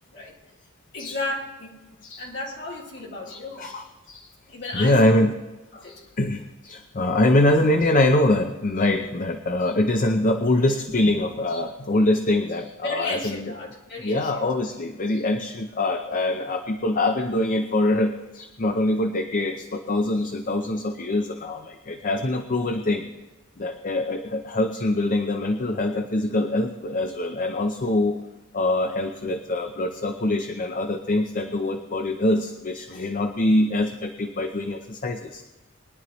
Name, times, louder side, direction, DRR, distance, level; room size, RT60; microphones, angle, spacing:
voice 1, 0.9-1.8 2.2-3.7 4.5-5.2 5.7-6.0 12.8-14.5, left 2 dB, 55° left, -4 dB, 3.7 m, -33 dB
voice 2, 3.3-4.3 4.7-5.3 5.9-13.5 14.0-23.0 23.6-28.2 28.5-35.4, left 1 dB, 40° left, 6 dB, 0.7 m, -24 dB
21.5 x 11.0 x 3.1 m, 1.1 s
head